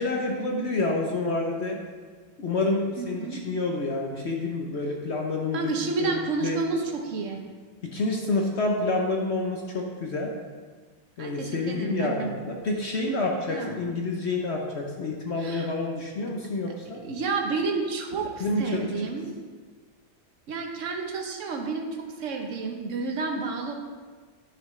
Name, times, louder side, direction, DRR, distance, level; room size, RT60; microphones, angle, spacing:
voice 1, 0.0-1.8 2.4-5.7 6.0-6.6 7.8-10.3 11.2-17.0 18.4-18.6, left 2 dB, 55° left, 0 dB, 0.8 m, -28 dB
voice 2, 3.0-3.4 5.5-7.4 11.2-12.4 13.5-13.9 15.4-15.7 17.0-19.3 20.5-23.7, right 4 dB, 50° right, 3 dB, 1.1 m, -30 dB
10.5 x 5.9 x 3.2 m, 1.5 s
omnidirectional pair, 1.8 m